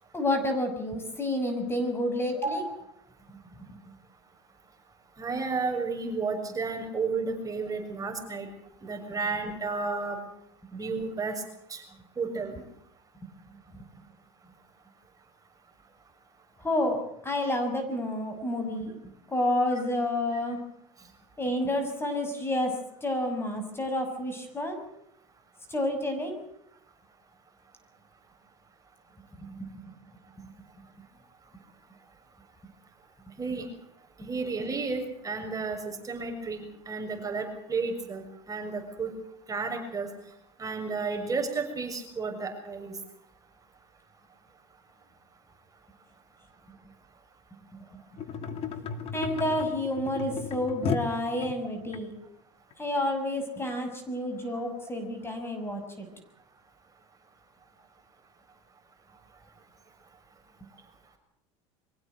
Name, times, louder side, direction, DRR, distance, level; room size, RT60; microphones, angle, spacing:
voice 1, 0.1-2.6 3.7-3.8 16.6-17.0 17.2-18.9 19.3-20.6 21.4-24.8 25.7-26.4 29.4-29.7 49.1-52.1 52.8-56.1, left 1 dB, 15° left, 6 dB, 6.1 m, -29 dB
voice 2, 2.4-2.7 5.2-8.5 8.8-10.2 10.7-11.4 11.7-11.8 12.2-12.6 33.4-33.7 34.2-39.1 39.5-40.1 40.6-42.9 54.5-54.6, right 4 dB, 25° right, 4 dB, 6.7 m, -32 dB
sound 1, 48.2-52.0 52.7-52.8, left 6 dB, 40° left, 2.7 m, -34 dB
25.0 x 16.0 x 8.0 m, 0.73 s
supercardioid pair, 100°, 15 cm